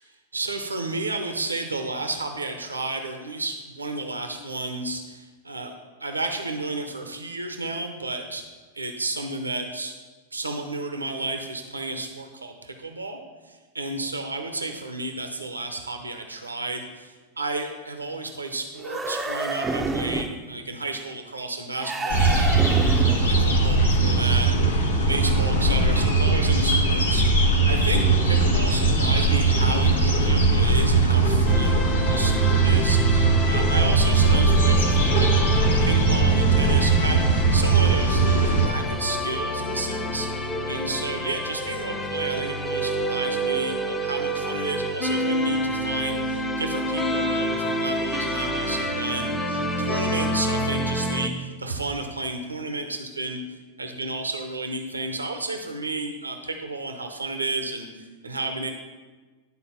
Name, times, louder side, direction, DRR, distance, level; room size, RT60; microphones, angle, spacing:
voice 1, 0.3-5.7 6.0-8.4 8.7-9.9 10.3-13.2 13.5-22.7 23.0-24.6 25.1-40.3 40.7-53.4 53.8-58.7, right 2 dB, 90° right, 5 dB, 0.8 m, -32 dB
sound 1, 18.8-20.4 21.8-23.4, right 3 dB, 15° right, 0.6 m, -28 dB
sound 2, 22.1-38.7, right 3 dB, 80° left, 1.2 m, -20 dB
sound 3, 31.5-51.3, equal, 20° left, 1.0 m, -28 dB
10.5 x 4.0 x 5.7 m, 1.3 s
figure-of-eight pair, 95°, 0 cm